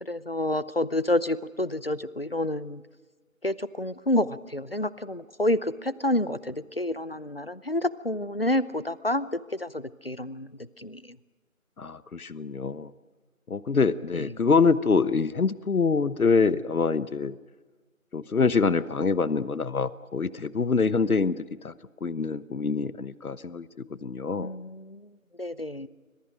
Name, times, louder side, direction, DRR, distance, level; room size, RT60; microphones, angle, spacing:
voice 1, 0.0-2.8 3.4-10.5 10.8-11.0 14.1-14.3 24.4-25.0 25.4-25.9, left 1 dB, 45° left, 18 dB, 0.7 m, -29 dB
voice 2, 11.8-12.9 13.5-17.4 18.1-21.4 21.6-21.7 22.0-23.7 24.0-24.5, left 4 dB, 85° left, 16 dB, 1.1 m, -25 dB
25.5 x 25.5 x 5.1 m, 1.3 s
figure-of-eight pair, 180°, 42 cm